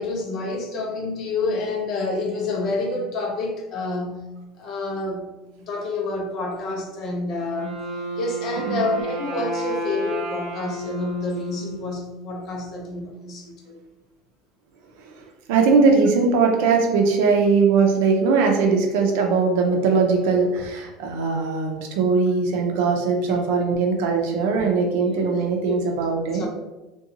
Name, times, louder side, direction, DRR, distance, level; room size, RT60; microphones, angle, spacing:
voice 1, 0.0-4.3 4.6-5.3 5.6-7.8 8.1-13.8 22.7-22.8 23.3-23.8 25.1-25.2 25.6-25.9 26.3-26.5, left 2 dB, 45° left, 1 dB, 0.6 m, -28 dB
Wind instrument woodwind instrument, 7.4-12.3, right 1 dB, 45° right, 1.0 m, -32 dB
voice 2, 15.5-26.5, right 4 dB, 80° right, 2 dB, 0.5 m, -20 dB
2.5 x 2.2 x 2.7 m, 1.1 s
supercardioid pair, 130°, 0 cm